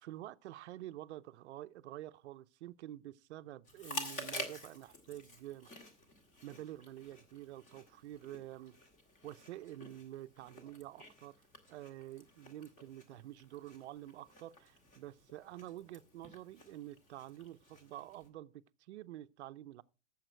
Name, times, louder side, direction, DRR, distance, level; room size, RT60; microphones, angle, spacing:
voice 1, 0.0-5.8 6.4-8.8 9.2-11.3 11.7-19.8, right 14 dB, 65° right, 0.7 m, -48 dB
Chewing mastication, 3.6-18.3, left 1 dB, 20° left, 1.8 m, -50 dB
14.5 x 7.3 x 4.5 m
supercardioid pair, 165°, 37 cm